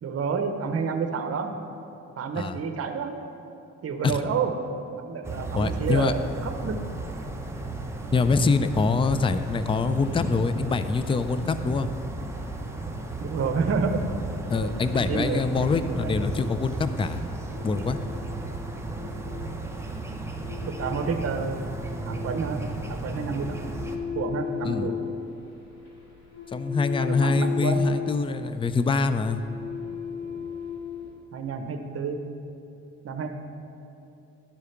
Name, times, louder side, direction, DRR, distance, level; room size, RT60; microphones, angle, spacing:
voice 1, 0.0-1.6 2.2-3.2 3.8-4.5 4.9-6.8 13.2-14.0 14.6-16.2 20.6-21.7 22.1-22.6 22.9-23.7 24.1-24.9 27.0-27.8 31.3-32.2 33.0-33.3, right 5 dB, 50° right, 6 dB, 0.9 m, -29 dB
sound 1, 5.2-24.0, right 2 dB, 10° right, 0.8 m, -35 dB
voice 2, 5.5-6.1 8.1-11.9 14.5-17.2 17.6-18.0 24.6-24.9 26.5-29.4, left 4 dB, 20° left, 11 dB, 0.4 m, -24 dB
sound 2, 14.6-31.1, left 7 dB, 60° left, 2.2 m, -37 dB
12.0 x 4.9 x 5.7 m, 2.7 s
cardioid pair, 90°, 30 cm